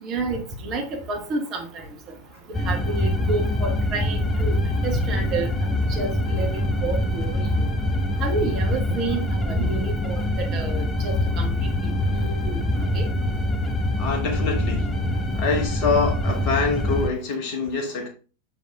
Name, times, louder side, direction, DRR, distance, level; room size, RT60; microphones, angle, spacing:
voice 1, 0.0-1.8 2.5-4.5 4.8-7.6 8.2-11.5 11.8-12.6 12.9-13.1, right 3 dB, 35° right, 1.5 m, -30 dB
sound 1, 2.5-17.1, left 1 dB, 15° left, 0.7 m, -24 dB
voice 2, 14.0-14.9 15.4-18.1, left 4 dB, 45° left, 1.7 m, -25 dB
6.9 x 4.0 x 3.5 m
figure-of-eight pair, 90°, 0 cm